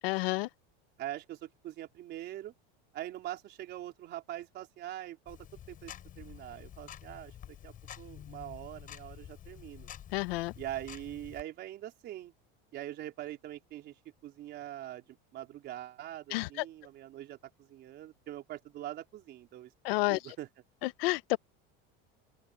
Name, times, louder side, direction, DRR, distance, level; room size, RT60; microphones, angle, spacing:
voice 1, 0.0-0.5 10.1-10.5 16.3-16.6 19.8-20.4 20.8-21.4, left 23 dB, 80° left, 0.8 m, -30 dB
voice 2, 1.0-2.5 2.9-5.4 5.7-9.9 10.6-12.3 12.7-13.9 14.2-19.7 20.1-20.5, right 13 dB, 35° right, 3.8 m, -43 dB
Tick-tock, 5.3-11.4, left 10 dB, 30° left, 5.6 m, -49 dB
open air
supercardioid pair, 165°, 29 cm